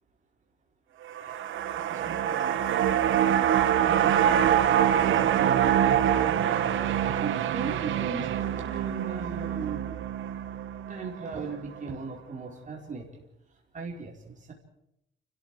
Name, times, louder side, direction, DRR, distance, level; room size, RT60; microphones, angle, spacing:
sound 1, 1.1-11.5 11.8-11.9, right 10 dB, 80° right, 1.4 m, -25 dB
voice 1, 1.7-2.6 3.8-4.3 4.9-6.7 7.2-9.9 10.9-13.2 13.7-14.5, right 4 dB, 40° right, -1 dB, 4.8 m, -38 dB
29.0 x 14.0 x 7.7 m, 0.80 s
cardioid pair, 90°, 20 cm